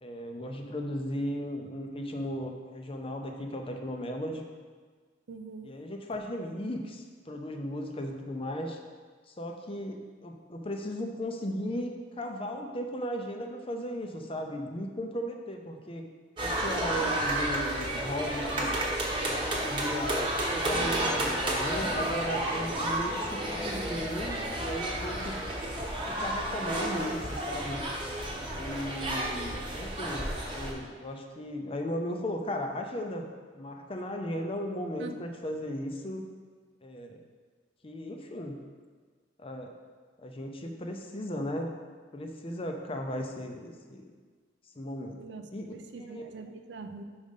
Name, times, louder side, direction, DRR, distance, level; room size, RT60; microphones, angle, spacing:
voice 1, 0.0-4.4 5.6-8.8 9.3-16.0 16.4-18.8 19.2-25.3 26.2-27.8 28.5-33.2 33.5-36.2 36.8-37.2 37.8-38.6 39.4-39.7 40.2-41.7 42.1-44.1 44.8-45.2 45.5-46.3, equal, 30° left, 3 dB, 0.7 m, -36 dB
voice 2, 5.3-5.7 16.7-17.1 35.0-35.1 45.2-45.5 45.7-47.0, right 4 dB, 75° right, 7 dB, 0.5 m, -43 dB
sound 1, 16.4-30.7, right 1 dB, 30° right, 1.1 m, -31 dB
5.2 x 5.1 x 5.4 m, 1.5 s
head